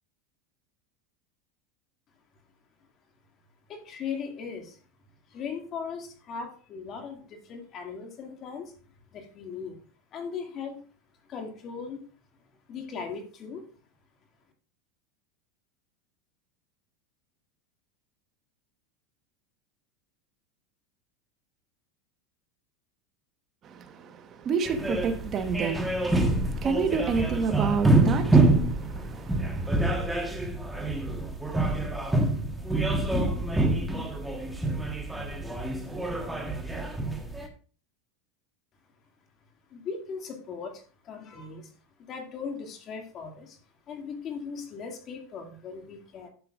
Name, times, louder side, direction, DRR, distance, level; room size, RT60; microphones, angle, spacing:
voice 1, 3.7-4.8 5.3-8.6 9.1-9.8 10.1-10.8 11.3-12.0 12.7-13.7 39.7-41.7 42.0-43.6 43.9-46.3, left 5 dB, 35° left, 2.2 m, -38 dB
voice 2, 23.6-30.1, right 5 dB, 35° right, 1.2 m, -30 dB
sound 1, 24.6-37.5, right 2 dB, 5° right, 1.4 m, -26 dB
11.5 x 6.8 x 2.5 m
supercardioid pair, 130°, 0 cm